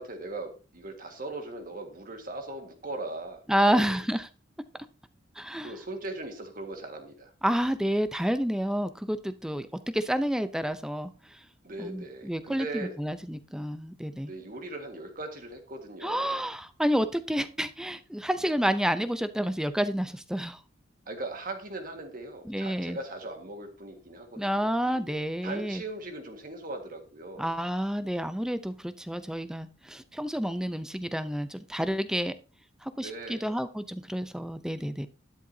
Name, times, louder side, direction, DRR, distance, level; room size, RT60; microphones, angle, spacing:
voice 1, 0.0-4.0 5.6-7.3 11.6-12.9 14.2-16.4 21.1-25.1 25.4-27.5 33.0-33.6, right 2 dB, 45° right, 1.8 m, -39 dB
voice 2, 3.5-4.3 5.4-5.7 7.4-11.4 11.8-14.3 16.0-20.6 22.5-23.0 24.4-25.8 27.4-32.3 32.8-35.1, equal, 5° right, 0.6 m, -29 dB
12.0 x 10.5 x 2.8 m
head